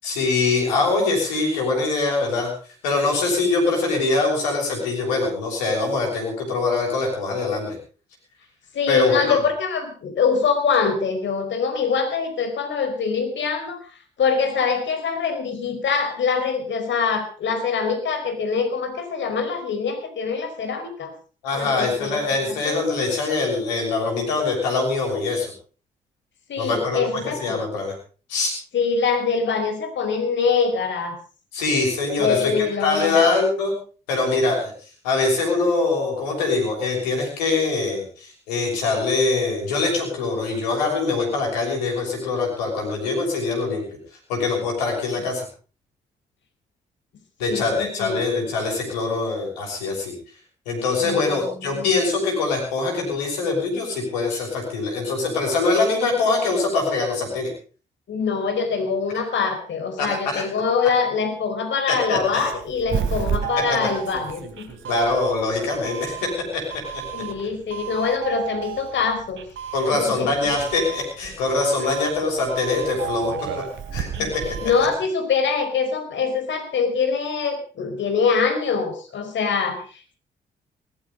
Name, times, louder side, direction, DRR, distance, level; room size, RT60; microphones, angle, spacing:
voice 1, 0.0-2.5 2.8-7.8 8.9-9.4 21.4-25.5 26.6-27.9 28.3-28.5 31.5-33.7 34.1-34.7 35.0-43.8 44.3-45.4 47.4-50.1 50.7-57.5 60.0-60.5 61.9-62.2 64.9-66.6 69.7-73.5 73.9-74.4, left 3 dB, 90° left, 1 dB, 6.2 m, -23 dB
voice 2, 8.7-13.8 14.2-21.1 21.5-22.8 26.5-27.6 28.7-31.2 32.2-33.3 47.4-48.5 51.0-51.9 58.1-64.7 67.1-69.4 69.9-70.3 74.2-74.3 74.6-80.1, left 5 dB, 60° left, 7 dB, 5.0 m, -24 dB
Doorbell, 62.2-75.0, right 8 dB, 65° right, 3.4 m, -32 dB
18.5 x 14.0 x 5.2 m, 0.38 s
hypercardioid pair, 45°, 21 cm